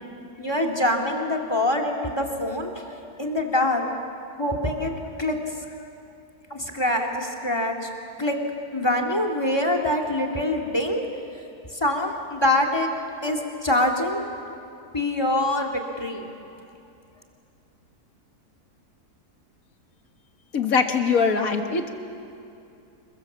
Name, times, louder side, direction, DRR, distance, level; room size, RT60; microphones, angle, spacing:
voice 1, 0.4-3.9 4.4-4.9 5.2-5.4 6.5-7.9 8.2-8.4 8.7-12.9 13.2-14.3 14.9-16.2, left 1 dB, 15° left, 3 dB, 2.4 m, -25 dB
voice 2, 20.5-21.9, left 5 dB, 60° left, 5 dB, 2.0 m, -22 dB
28.0 x 22.5 x 7.4 m, 2.6 s
omnidirectional pair, 1.7 m